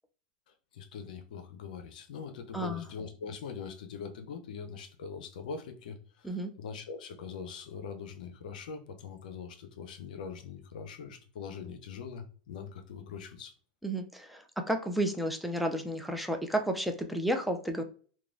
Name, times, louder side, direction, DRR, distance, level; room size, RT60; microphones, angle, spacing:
voice 1, 0.7-13.5, left 6 dB, 75° left, 0.5 m, -42 dB
voice 2, 2.5-2.8 6.2-6.5 13.8-17.8, right 1 dB, ahead, 0.4 m, -32 dB
3.0 x 2.2 x 2.5 m
hypercardioid pair, 110°, 5 cm